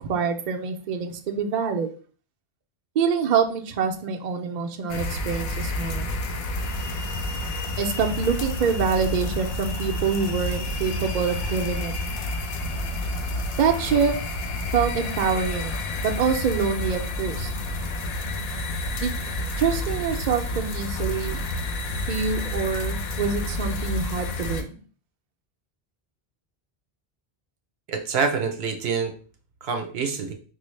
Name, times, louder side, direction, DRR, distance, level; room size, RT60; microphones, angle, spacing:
voice 1, 0.0-1.9 3.0-6.1 7.8-11.9 13.6-14.2 14.7-17.5 19.0-19.2 19.6-21.4 22.1-24.8, right 6 dB, 55° right, 3 dB, 0.5 m, -25 dB
sound 1, 4.9-24.6, left 1 dB, 75° left, 0.8 m, -29 dB
voice 2, 27.9-29.1 29.6-30.3, right 5 dB, 75° right, 6 dB, 0.9 m, -26 dB
4.6 x 2.0 x 3.1 m, 0.39 s
omnidirectional pair, 1.1 m